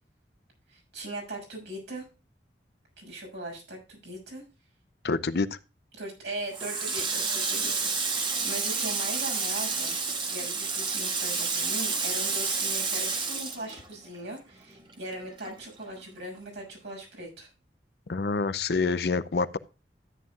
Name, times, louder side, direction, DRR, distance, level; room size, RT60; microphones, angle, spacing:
voice 1, 0.7-2.0 3.0-4.4 6.0-10.0 10.3-17.5, right 1 dB, 70° right, 6.3 m, -39 dB
voice 2, 5.0-5.6 18.1-19.6, left 4 dB, 60° left, 0.6 m, -27 dB
Water tap faucet, 6.5-14.4 14.7-16.0, right 4 dB, 25° right, 1.3 m, -30 dB
13.5 x 9.3 x 2.4 m
head